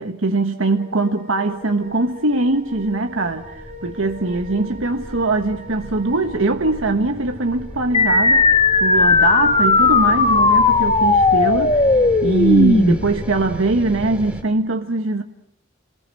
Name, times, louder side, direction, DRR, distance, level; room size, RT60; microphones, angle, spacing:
voice 1, 0.0-11.8 12.2-15.2, right 3 dB, 85° right, 1.3 m, -21 dB
sound 1, 0.6-12.3, right 2 dB, 40° right, 3.4 m, -40 dB
sound 2, 1.9-14.4, equal, 5° right, 2.4 m, -35 dB
sound 3, 7.9-12.9, left 3 dB, 30° left, 1.2 m, -16 dB
28.0 x 20.5 x 7.7 m
head